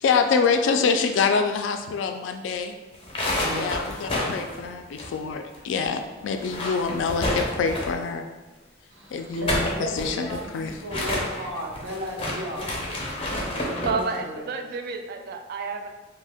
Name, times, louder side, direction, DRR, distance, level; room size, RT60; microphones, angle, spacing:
voice 1, 0.0-2.7 3.5-8.2 9.1-10.7, left 5 dB, 75° left, 6 dB, 0.3 m, -25 dB
sound 1, 2.9-5.6 5.8-5.9 6.3-8.1 9.2-14.0, left 1 dB, 30° left, 0.6 m, -29 dB
voice 2, 3.3-4.0 8.9-12.8 13.5-14.4, equal, 85° right, -1 dB, 0.7 m, -35 dB
voice 3, 13.8-15.9, right 4 dB, 55° right, 5 dB, 0.3 m, -30 dB
2.6 x 2.1 x 3.4 m, 1.2 s
head